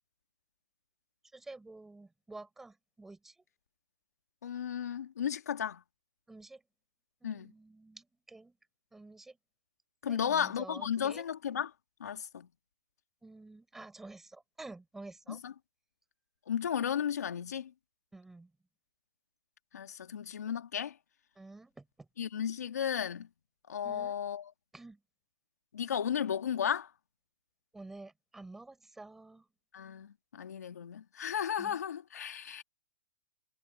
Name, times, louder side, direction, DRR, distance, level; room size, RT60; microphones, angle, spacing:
voice 1, 1.3-3.4 6.3-6.6 7.2-8.6 8.9-9.4 10.1-11.2 13.2-15.4 18.1-18.5 21.4-22.1 23.8-24.2 24.7-25.0 27.7-29.5 31.6-31.8, right 2 dB, 5° right, 4.3 m, -50 dB
voice 2, 4.4-5.8 7.2-7.5 10.0-11.7 12.0-12.5 15.3-15.5 16.5-17.7 19.7-21.0 22.2-23.3 23.7-24.5 25.7-26.9 29.7-32.6, left 8 dB, 80° left, 1.8 m, -34 dB
hypercardioid pair, 170°, 9 cm